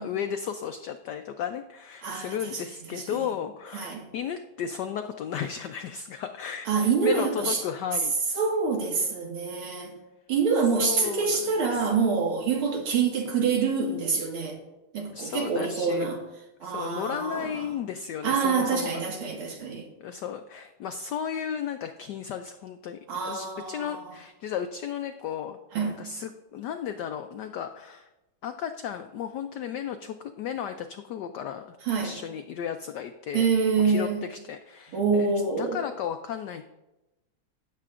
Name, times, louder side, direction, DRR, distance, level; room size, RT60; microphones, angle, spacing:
voice 1, 0.0-8.1 10.8-11.9 13.3-13.4 15.1-16.1 16.6-19.0 19.4-19.5 20.0-25.6 25.9-28.1 28.4-33.5 33.8-35.3 35.6-36.6, left 8 dB, 80° left, 0.9 m, -34 dB
voice 2, 2.0-2.3 3.1-3.2 3.7-4.1 6.7-7.6 8.4-9.9 10.3-14.6 14.9-16.2 16.6-17.7 18.2-19.9 23.1-24.0 25.7-26.0 31.9-32.1 33.3-34.3 34.9-35.8, right 5 dB, 75° right, 2.5 m, -26 dB
16.5 x 7.6 x 2.5 m
omnidirectional pair, 2.4 m